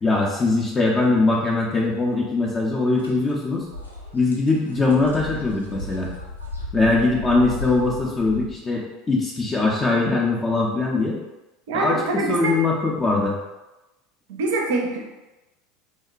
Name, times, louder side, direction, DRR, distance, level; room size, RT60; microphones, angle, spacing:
voice 1, 0.0-3.6 4.1-6.1 6.7-11.2 11.7-13.4, left 3 dB, 20° left, -3 dB, 0.4 m, -21 dB
sound 1, 3.0-3.1 3.5-8.5, left 2 dB, 90° left, 0.4 m, -35 dB
voice 2, 11.7-12.5 14.3-15.0, right 2 dB, 60° right, 1 dB, 0.5 m, -24 dB
2.8 x 2.1 x 2.4 m, 1.0 s
figure-of-eight pair, 75°, 0 cm